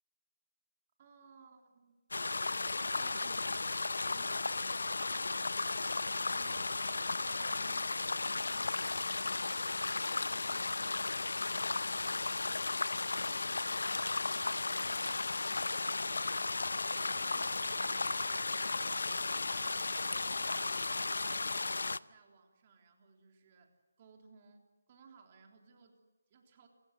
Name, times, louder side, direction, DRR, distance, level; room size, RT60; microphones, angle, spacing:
voice 1, 1.0-1.9 2.9-3.8 4.1-5.5 6.2-12.8 13.2-20.6 21.0-26.7, right 5 dB, 30° right, 2 dB, 3.6 m, -62 dB
sound 1, 2.1-22.0, left 3 dB, 80° left, 0.7 m, -35 dB
28.0 x 15.5 x 9.5 m, 1.3 s
hypercardioid pair, 165°, 0 cm